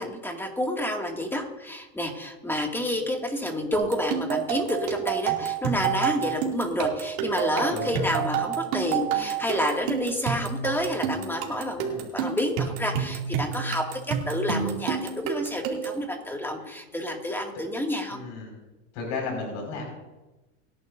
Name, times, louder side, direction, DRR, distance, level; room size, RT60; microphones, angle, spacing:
voice 1, 0.0-18.2, left 1 dB, 5° left, 1 dB, 2.4 m, -29 dB
sound 1, 3.7-16.0, right 8 dB, 70° right, 2.9 m, -29 dB
voice 2, 7.7-8.2 11.8-12.1 16.6-16.7 18.1-18.6 18.9-19.8, left 4 dB, 65° left, 0 dB, 5.7 m, -34 dB
29.5 x 11.0 x 2.7 m, 1.1 s
supercardioid pair, 110°, 33 cm